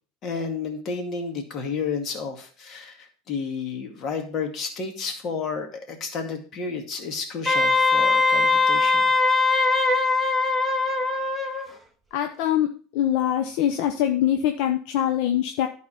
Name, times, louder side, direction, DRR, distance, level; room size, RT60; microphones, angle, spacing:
voice 1, 0.2-9.1, left 5 dB, 45° left, 4 dB, 2.1 m, -31 dB
Wind instrument woodwind instrument, 7.5-11.7, left 3 dB, 5° left, 1.2 m, -21 dB
voice 2, 12.1-15.7, left 11 dB, 65° left, 6 dB, 0.8 m, -23 dB
11.0 x 4.2 x 5.8 m, 0.41 s
supercardioid pair, 120°, 0 cm